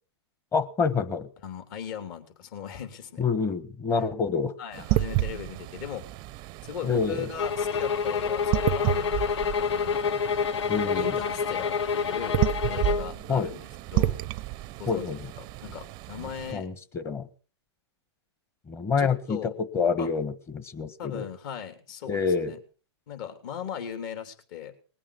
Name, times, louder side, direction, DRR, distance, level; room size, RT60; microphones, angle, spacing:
voice 1, 0.5-1.3 3.2-4.5 6.8-7.3 10.7-11.2 13.3-13.5 14.9-15.2 16.5-17.3 18.7-21.3 22.1-22.5, left 5 dB, 15° left, 12 dB, 1.4 m, -27 dB
voice 2, 1.4-3.2 4.6-6.1 6.6-10.2 10.6-13.6 13.9-14.2 14.8-16.7 19.0-19.5 20.0-20.1 21.0-22.6 23.1-24.7, left 8 dB, 45° left, 7 dB, 3.5 m, -38 dB
sound 1, 4.7-16.5, right 16 dB, 30° right, 0.6 m, -31 dB
sound 2, 7.4-13.1, left 6 dB, 70° left, 0.7 m, -27 dB
20.5 x 8.7 x 7.1 m, 0.40 s
hypercardioid pair, 135°, 15 cm